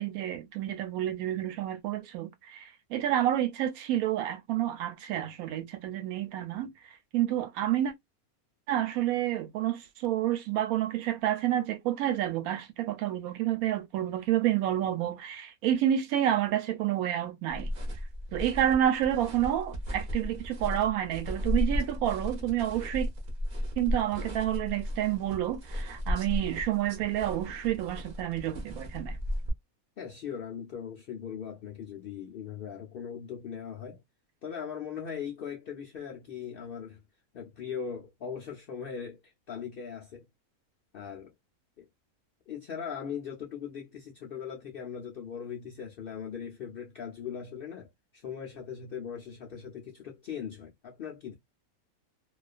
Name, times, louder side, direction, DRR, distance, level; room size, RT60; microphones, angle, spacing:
voice 1, 0.0-6.7 7.1-7.9 8.7-17.7 18.3-23.1 23.8-29.2, right 12 dB, 80° right, 1.0 m, -29 dB
sound 1, 17.5-29.5, equal, 45° right, 0.7 m, -35 dB
voice 2, 30.0-34.0 34.4-37.0 37.3-40.3 40.9-41.3 41.8-41.9 42.5-51.3, left 7 dB, 75° left, 0.5 m, -39 dB
2.3 x 2.3 x 2.3 m
omnidirectional pair, 1.5 m